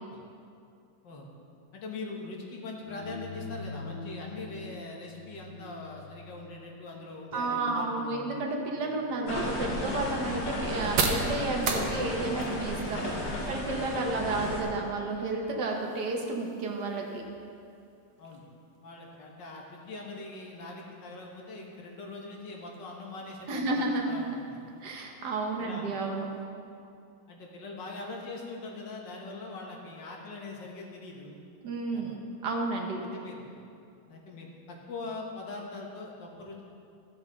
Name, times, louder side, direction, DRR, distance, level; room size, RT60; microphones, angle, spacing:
voice 1, 1.7-8.4 14.1-14.2 18.2-18.4 18.8-24.6 25.6-25.9 27.3-31.4 31.9-32.2 33.1-33.5 34.1-36.6, left 3 dB, 85° left, -1 dB, 2.0 m, -42 dB
sound 1, 2.8-12.8, left 3 dB, 25° right, 2.3 m, -46 dB
voice 2, 7.3-17.2 23.5-24.4 24.8-26.3 31.6-33.0, right 3 dB, 70° right, 1 dB, 1.6 m, -32 dB
sound 2, 8.8-26.4, right 5 dB, 90° right, 1.5 m, -40 dB
sound 3, 9.3-14.6, left 1 dB, 60° left, 2.1 m, -34 dB
14.0 x 6.9 x 3.9 m, 2.5 s
omnidirectional pair, 1.9 m